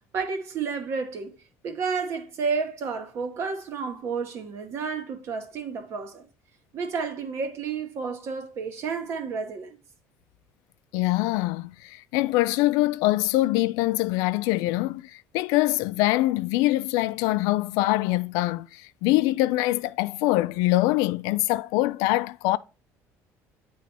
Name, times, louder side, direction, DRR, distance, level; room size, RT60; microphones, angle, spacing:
voice 1, 0.0-1.4 1.6-6.3 6.7-9.8, right 5 dB, 50° right, 1.1 m, -31 dB
voice 2, 10.9-22.6, left 18 dB, 85° left, 0.4 m, -24 dB
9.0 x 3.1 x 4.1 m
cardioid pair, 145°, 6 cm